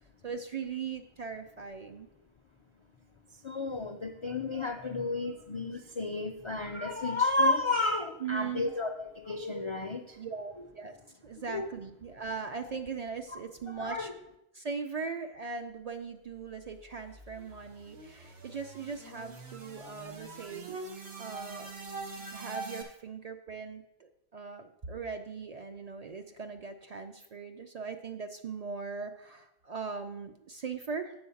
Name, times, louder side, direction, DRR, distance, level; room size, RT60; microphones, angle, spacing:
voice 1, 0.2-2.1 8.2-8.7 10.2-11.0 11.2-14.1 14.5-20.8 21.2-21.7 22.3-31.1, right 5 dB, 50° right, 6 dB, 0.5 m, -39 dB
voice 2, 3.4-10.2 11.5-11.7 13.3-13.4 13.7-14.1, left 2 dB, 50° left, 4 dB, 0.3 m, -32 dB
sound 1, 16.4-22.8, right 3 dB, 75° right, 1.4 m, -44 dB
7.8 x 4.5 x 7.0 m, 0.86 s
omnidirectional pair, 1.1 m